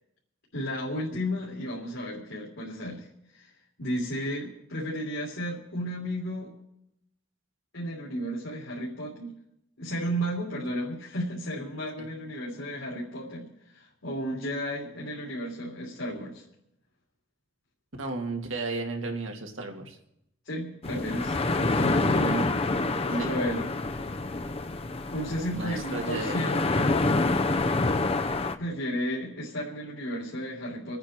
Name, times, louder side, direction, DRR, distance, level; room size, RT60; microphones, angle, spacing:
voice 1, 0.5-3.1 3.3-3.5 3.8-6.5 7.7-9.3 9.8-13.5 13.7-16.4 20.4-22.5 23.0-23.6 25.1-27.4 28.6-31.0, equal, 75° left, -5 dB, 3.2 m, -33 dB
voice 2, 18.0-20.0 23.2-23.3 25.5-26.4, right 2 dB, 85° right, 2 dB, 2.3 m, -33 dB
sound 1, 20.8-28.6, left 2 dB, 30° left, 0.6 m, -27 dB
27.5 x 9.4 x 4.4 m, 0.81 s
head